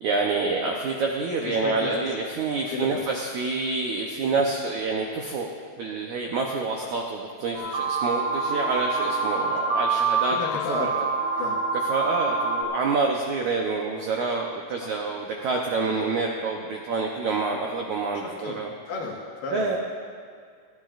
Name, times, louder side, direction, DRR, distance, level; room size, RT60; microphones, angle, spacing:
voice 1, 0.0-5.5 5.8-10.4 10.7-10.9 11.9-18.7 19.5-19.8, right 4 dB, 90° right, 0 dB, 1.6 m, -27 dB
voice 2, 1.5-1.9 2.7-2.9 6.8-6.9 10.3-10.9 11.4-11.6 14.8-14.9 18.2-18.6 18.9-19.8, left 3 dB, 75° left, -3 dB, 3.4 m, -33 dB
ambient Lowend, 7.5-12.6, right 3 dB, 60° right, 1.2 m, -26 dB
29.0 x 10.5 x 2.5 m, 2.2 s
omnidirectional pair, 4.6 m